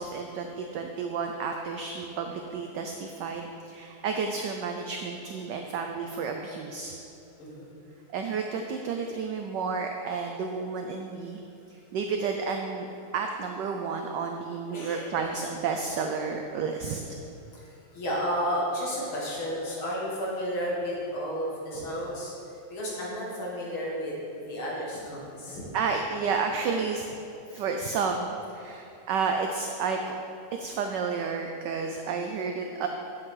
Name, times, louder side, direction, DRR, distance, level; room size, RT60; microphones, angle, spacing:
voice 1, 0.0-7.0 8.1-11.4 11.7-12.9 13.1-17.2 25.7-27.1 27.5-30.2 30.5-32.9, right 5 dB, 75° right, 4 dB, 1.0 m, -31 dB
voice 2, 14.7-15.3 17.5-25.6, equal, 75° left, -5 dB, 2.7 m, -32 dB
10.5 x 7.5 x 3.8 m, 2.8 s
omnidirectional pair, 2.3 m